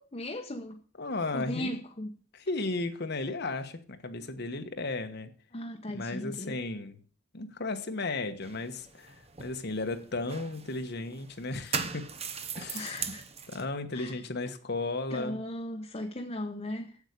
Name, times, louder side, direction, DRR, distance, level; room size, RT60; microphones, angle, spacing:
voice 1, 0.0-0.8 1.3-2.1 5.5-6.6 12.7-13.3 13.9-14.2 15.1-17.0, left 1 dB, 30° left, 1.1 m, -37 dB
voice 2, 1.0-1.8 2.3-5.3 5.9-7.0 7.3-12.1 12.6-13.0 13.5-15.4, left 2 dB, 60° left, 1.2 m, -35 dB
sound 1, 8.4-13.7, right 6 dB, 30° right, 1.0 m, -39 dB
8.3 x 8.1 x 8.2 m
head